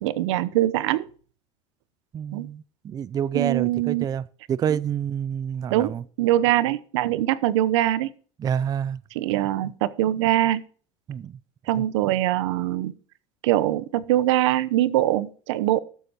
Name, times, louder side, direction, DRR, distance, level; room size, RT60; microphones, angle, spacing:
voice 1, 0.0-1.1 2.3-2.5 3.3-4.0 5.7-8.1 9.1-10.6 11.7-12.9 13.4-15.8, right 14 dB, 85° right, 0.9 m, -23 dB
voice 2, 2.1-4.2 4.5-6.0 8.4-9.0 9.3-9.4 11.1-11.3 11.8-11.9, right 8 dB, 25° right, 0.5 m, -28 dB
12.5 x 8.1 x 4.4 m
supercardioid pair, 135°, 15 cm